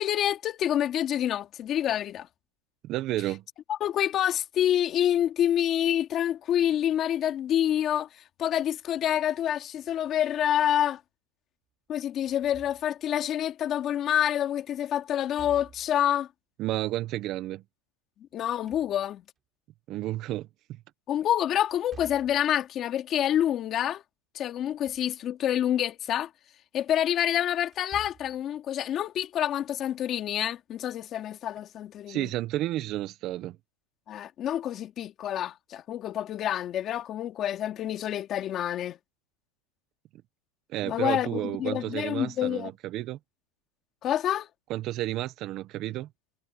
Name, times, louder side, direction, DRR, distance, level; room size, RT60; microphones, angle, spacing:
voice 1, 0.0-2.3 3.7-11.0 11.9-16.3 18.3-19.2 21.1-24.0 24.3-26.3 26.7-32.3 34.1-39.0 40.8-42.7 44.0-44.5, left 11 dB, 30° left, 2.3 m, -27 dB
voice 2, 2.8-3.4 16.6-17.6 19.9-20.5 32.1-33.6 40.7-43.2 44.7-46.1, right 15 dB, 40° right, 0.7 m, -31 dB
Slam / Thump thud, 12.3-13.2 15.2-16.1 18.3-19.4 21.7-22.5 24.6-25.2 25.5-25.6 27.6-28.5, right 6 dB, 20° right, 3.3 m, -50 dB
supercardioid pair, 155°, 0 cm